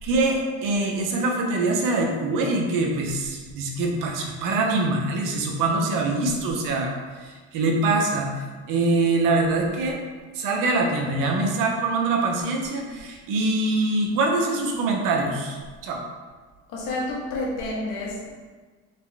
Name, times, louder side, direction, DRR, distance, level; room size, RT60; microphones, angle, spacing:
voice 1, 0.0-6.9 7.2-8.3 8.7-10.0 10.3-16.0, right 2 dB, 70° right, 2 dB, 0.9 m, -24 dB
voice 2, 16.7-18.3, left 2 dB, 70° left, -4 dB, 1.5 m, -29 dB
4.3 x 3.0 x 3.4 m, 1.4 s
supercardioid pair, 100°, 34 cm